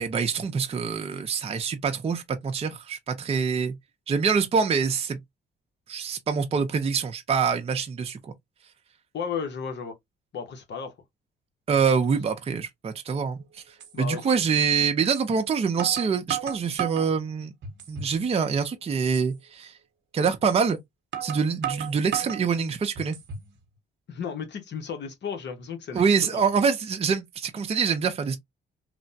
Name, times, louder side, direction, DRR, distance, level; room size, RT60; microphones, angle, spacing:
voice 1, 0.0-3.7 4.1-5.2 5.9-8.3 11.7-17.5 17.9-19.7 20.1-20.8 21.2-23.2 25.9-28.4, right 6 dB, 30° right, 0.5 m, -25 dB
voice 2, 9.1-10.0 10.3-10.9 13.9-14.4 24.1-26.0 26.3-26.5, left 6 dB, 60° left, 0.9 m, -34 dB
sound 1, 13.8-13.9 15.1-15.3 15.8-17.1 17.6-18.2 18.6-18.7 19.1-19.3 20.5-20.6 21.1-22.4 23.0-23.5, right 9 dB, 65° right, 0.9 m, -34 dB
3.2 x 2.1 x 2.7 m
cardioid pair, 90°, 20 cm